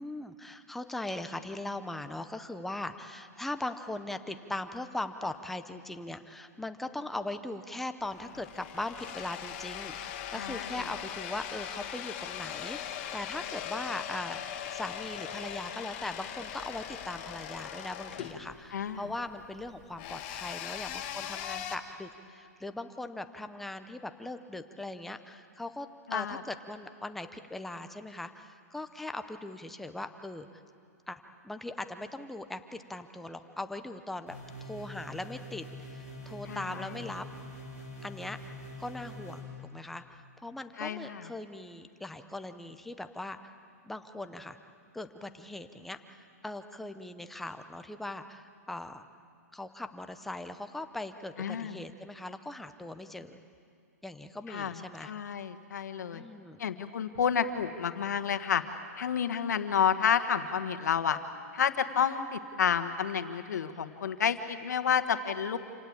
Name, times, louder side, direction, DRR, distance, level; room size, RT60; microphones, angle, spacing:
voice 1, 0.0-30.6 31.1-37.3 38.0-38.4 38.8-39.5 39.7-43.4 43.8-44.6 44.9-49.0 49.5-53.4 54.0-55.1 56.1-56.6 63.7-63.8, left 2 dB, ahead, 8 dB, 0.6 m, -40 dB
sound 1, 8.0-21.8, left 9 dB, 35° left, 1.5 m, -40 dB
voice 2, 10.3-10.8 18.7-19.1 26.1-26.4 36.5-36.9 40.8-41.3 51.4-51.8 54.5-56.2 56.6-58.6 59.0-61.2 61.5-65.6, left 7 dB, 80° left, 9 dB, 1.7 m, -30 dB
sound 2, 34.3-39.4, equal, 15° right, 5.1 m, -45 dB
27.5 x 18.0 x 8.8 m, 2.4 s
hypercardioid pair, 170°, 9 cm